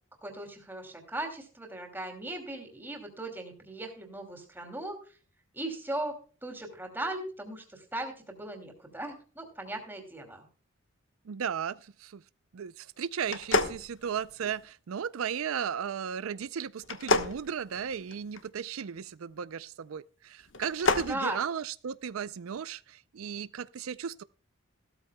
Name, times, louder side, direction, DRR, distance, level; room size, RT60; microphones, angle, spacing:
voice 1, 0.2-5.0 5.5-10.4 21.1-21.4, right 1 dB, 10° right, 2.6 m, -38 dB
voice 2, 11.3-12.2 12.5-24.2, right 7 dB, 90° right, 0.4 m, -35 dB
sound 1, 13.3-14.6 16.8-18.4 20.5-21.1, left 3 dB, 65° left, 1.2 m, -29 dB
16.0 x 13.0 x 2.2 m
head